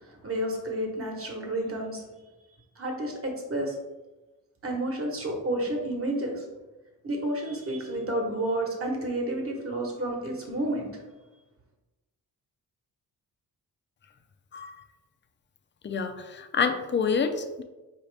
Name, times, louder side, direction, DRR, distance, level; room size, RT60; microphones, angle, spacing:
voice 1, 0.0-2.0 2.8-3.7 4.6-6.4 7.0-10.9, right 1 dB, 35° right, 0 dB, 1.1 m, -30 dB
voice 2, 15.8-17.6, left 5 dB, 30° left, 7 dB, 0.4 m, -28 dB
4.8 x 2.8 x 3.3 m, 1.1 s
cardioid pair, 90°, 39 cm